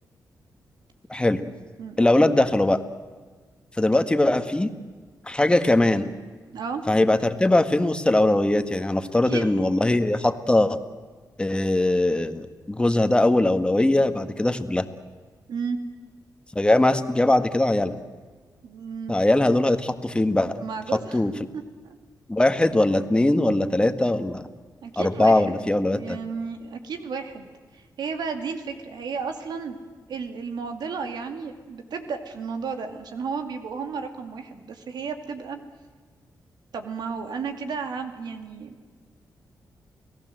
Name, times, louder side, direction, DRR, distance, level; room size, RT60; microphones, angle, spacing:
voice 1, 1.1-1.4 2.0-2.8 3.8-4.7 5.3-6.1 6.9-10.8 11.4-14.9 16.6-18.0 19.1-20.5 21.1-21.3 22.3-24.5 25.0-26.2, left 1 dB, 15° left, 9 dB, 1.8 m, -21 dB
voice 2, 6.5-6.8 9.3-9.6 15.5-15.8 18.6-19.1 20.6-21.2 21.5-21.6 24.8-25.4 25.9-29.8 30.1-35.6 36.7-38.7, right 5 dB, 80° right, 6 dB, 2.4 m, -33 dB
29.5 x 17.5 x 7.8 m, 1.5 s
cardioid pair, 80°, 7 cm